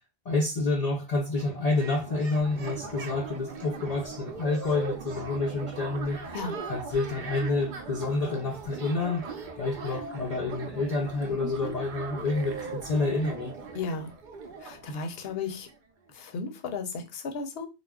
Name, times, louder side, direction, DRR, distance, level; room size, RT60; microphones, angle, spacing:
voice 1, 0.3-6.2 6.6-9.2 9.6-13.5, left 3 dB, 50° left, 0.5 m, -28 dB
sound 1, 1.2-15.8, right 4 dB, 55° right, 0.6 m, -40 dB
voice 2, 13.7-14.1 14.6-15.7 16.1-17.7, left 4 dB, 70° left, 0.8 m, -34 dB
2.4 x 2.1 x 3.4 m
omnidirectional pair, 1.1 m